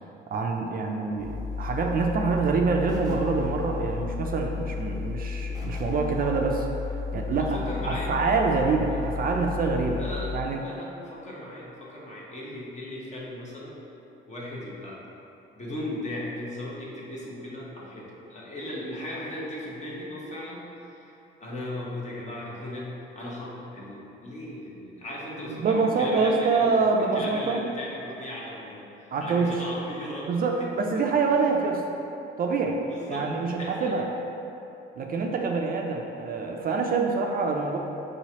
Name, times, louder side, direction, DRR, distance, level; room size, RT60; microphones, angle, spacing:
voice 1, 0.3-6.7 7.1-7.6 7.8-10.0 10.3-10.6 25.6-27.6 29.1-29.6 30.2-31.8 32.4-32.8 33.1-34.0 35.0-37.8, right 4 dB, 45° right, 1 dB, 0.4 m, -25 dB
sound 1, 1.2-10.4, left 5 dB, 20° left, 0.4 m, -33 dB
sound 2, 2.9-4.1 5.5-6.6, right 1 dB, 20° right, 0.8 m, -48 dB
voice 2, 7.4-8.2 8.9-9.0 9.9-13.7 14.3-15.0 15.5-21.1 21.4-22.9 23.1-26.8 27.1-30.3 30.6-30.7 30.9-31.0 32.8-34.0, left 1 dB, 35° left, -5 dB, 0.9 m, -37 dB
4.9 x 3.0 x 2.8 m, 2.9 s
cardioid pair, 90°, 20 cm